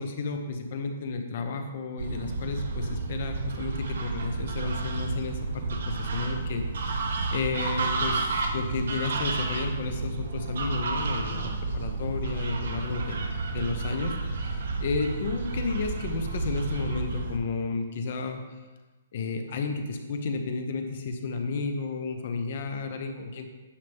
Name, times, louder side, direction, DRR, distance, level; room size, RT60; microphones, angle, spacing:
voice 1, 0.0-13.2 13.5-18.4 19.1-23.5, left 4 dB, 40° left, 6 dB, 0.8 m, -32 dB
sound 1, 2.0-17.4, right 3 dB, 60° right, 0.9 m, -31 dB
9.8 x 5.7 x 3.5 m, 1.2 s
hypercardioid pair, 175°, 0 cm